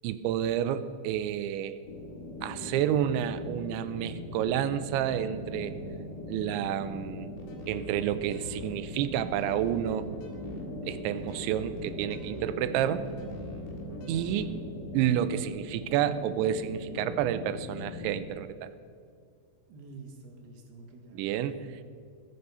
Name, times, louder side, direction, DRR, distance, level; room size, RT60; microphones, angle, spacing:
voice 1, 0.0-1.8 2.4-5.8 6.3-7.3 7.7-10.1 10.9-13.0 14.1-14.6 14.9-18.7 21.1-21.6, right 10 dB, 85° right, 12 dB, 2.9 m, -30 dB
sound 1, 1.8-18.2, left 1 dB, 40° left, 3.9 m, -40 dB
sound 2, 7.4-14.6, left 4 dB, 70° left, 4.3 m, -48 dB
voice 2, 19.7-21.8, right 3 dB, 65° right, 1 dB, 3.8 m, -48 dB
20.5 x 8.1 x 5.6 m, 2.3 s
omnidirectional pair, 5.3 m